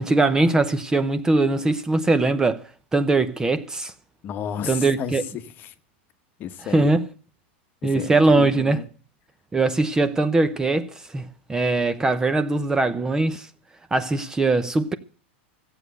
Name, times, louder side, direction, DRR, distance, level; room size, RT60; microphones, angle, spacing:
voice 1, 0.0-3.9 4.7-5.2 6.7-7.1 7.8-8.8 9.5-13.5 13.9-14.9, right 2 dB, 10° right, 0.7 m, -21 dB
voice 2, 4.2-5.7 6.4-6.9 7.8-8.9, left 9 dB, 30° left, 1.0 m, -33 dB
15.0 x 8.2 x 7.8 m
supercardioid pair, 145°, 6 cm